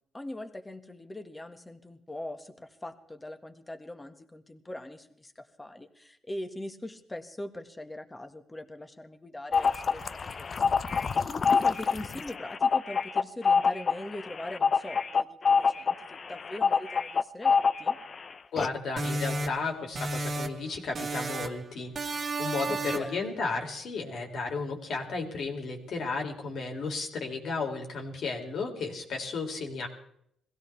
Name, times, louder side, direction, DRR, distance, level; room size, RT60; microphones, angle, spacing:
voice 1, 0.1-10.8 11.5-18.0 22.7-23.2, left 1 dB, 15° left, 7 dB, 1.7 m, -41 dB
sound 1, 9.5-18.2 18.6-18.7, left 5 dB, 40° left, 0.6 m, -26 dB
voice 2, 18.5-29.9, left 4 dB, 60° left, 2 dB, 3.4 m, -34 dB
sound 2, 19.0-20.7 20.9-21.6 21.9-23.2, right 2 dB, 40° right, 1.8 m, -33 dB
22.0 x 16.5 x 3.5 m, 0.71 s
cardioid pair, 90°, 0 cm